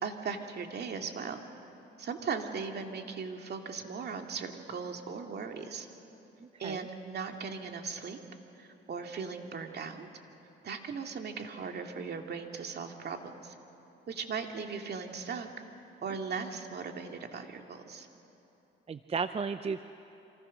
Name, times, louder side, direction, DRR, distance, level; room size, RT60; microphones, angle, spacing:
voice 1, 0.0-1.4 2.0-5.9 6.6-8.2 8.6-10.1 10.6-13.5 14.1-15.5 16.0-18.1, right 5 dB, 55° right, 4 dB, 2.3 m, -38 dB
voice 2, 6.4-6.9 18.9-19.8, right 5 dB, 30° right, 11 dB, 0.6 m, -34 dB
28.0 x 25.5 x 6.4 m, 3.0 s
cardioid pair, 90°, 20 cm